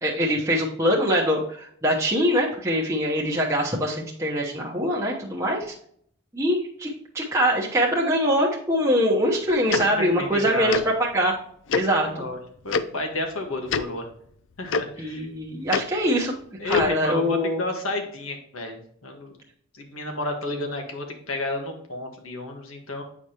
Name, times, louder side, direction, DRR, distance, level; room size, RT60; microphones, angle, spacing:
voice 1, 0.0-5.7 6.3-6.9 7.1-11.4 11.7-12.3 15.0-16.3 16.6-17.6, equal, 15° right, -4 dB, 0.9 m, -23 dB
voice 2, 9.7-10.7 12.0-12.4 12.6-14.1 14.6-15.3 16.6-19.3 19.8-23.0, left 2 dB, 85° left, 3 dB, 1.5 m, -31 dB
Tick-tock, 9.7-9.8 10.7-10.8 11.7-11.8 12.7-12.8 13.7-13.8 14.7-14.8 15.7-15.8 16.7-16.9, left 5 dB, 60° left, 0.4 m, -24 dB
8.5 x 4.8 x 2.9 m, 0.65 s
head